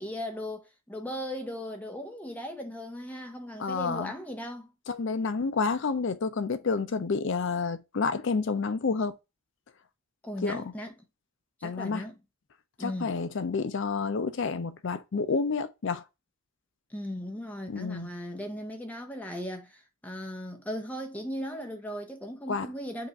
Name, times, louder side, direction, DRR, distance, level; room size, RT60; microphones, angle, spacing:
voice 1, 0.0-4.7 10.2-10.9 11.6-12.2 12.8-13.1 16.9-23.1, equal, 5° left, 0.7 m, -37 dB
voice 2, 3.6-4.1 4.9-9.2 10.4-10.7 11.6-12.0 12.8-16.0 17.7-18.1 22.5-22.7, left 4 dB, 55° left, 0.4 m, -29 dB
5.5 x 2.5 x 3.9 m
head